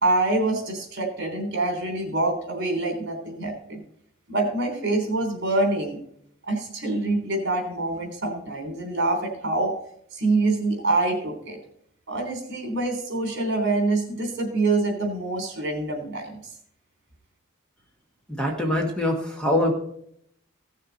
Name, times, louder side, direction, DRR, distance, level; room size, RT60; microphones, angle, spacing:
voice 1, 0.0-3.8 4.3-6.0 6.5-9.7 10.1-11.6 12.1-16.4, right 2 dB, 55° right, 3 dB, 3.4 m, -25 dB
voice 2, 18.3-19.7, left 1 dB, 5° left, 1 dB, 1.3 m, -24 dB
16.5 x 6.6 x 4.0 m, 0.68 s
head